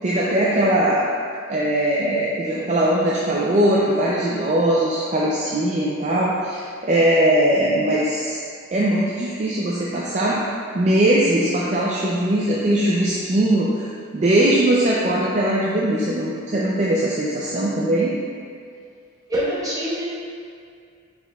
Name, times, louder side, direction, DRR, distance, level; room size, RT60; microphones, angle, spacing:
voice 1, 0.0-1.0 1.5-8.4 8.7-10.4 10.7-18.2, right 1 dB, 35° right, -6 dB, 0.4 m, -20 dB
voice 2, 19.3-20.1, equal, 15° right, -7 dB, 0.8 m, -24 dB
5.2 x 4.5 x 2.2 m, 2.3 s
head